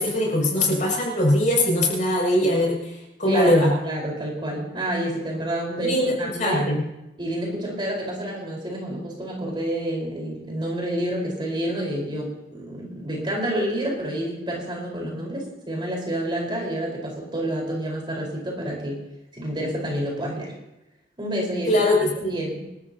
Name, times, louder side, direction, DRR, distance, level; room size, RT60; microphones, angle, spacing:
voice 1, 0.0-3.7 5.8-6.8 21.7-22.3, left 1 dB, 45° left, -2 dB, 6.6 m, -21 dB
voice 2, 3.3-6.6 7.2-19.0 19.3-20.5 21.2-21.7 22.1-22.6, right 1 dB, 25° right, -2 dB, 4.6 m, -29 dB
27.5 x 13.0 x 2.9 m, 0.92 s
head